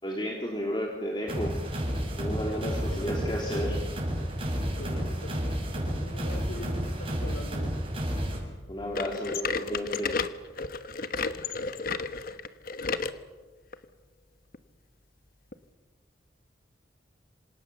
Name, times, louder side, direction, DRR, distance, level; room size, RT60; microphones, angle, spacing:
voice 1, 0.0-1.6 2.1-3.8 8.7-10.2, equal, 25° left, 0 dB, 3.3 m, -32 dB
sound 1, 1.3-8.4, equal, 30° right, 6.7 m, -31 dB
voice 2, 2.5-3.3 4.4-7.7, left 1 dB, 75° left, 8 dB, 4.0 m, -43 dB
sound 2, 8.9-13.2 13.7-13.8 14.5-14.6 15.5-15.6, left 4 dB, 50° left, 1.2 m, -32 dB
27.0 x 26.5 x 7.1 m, 1.3 s
head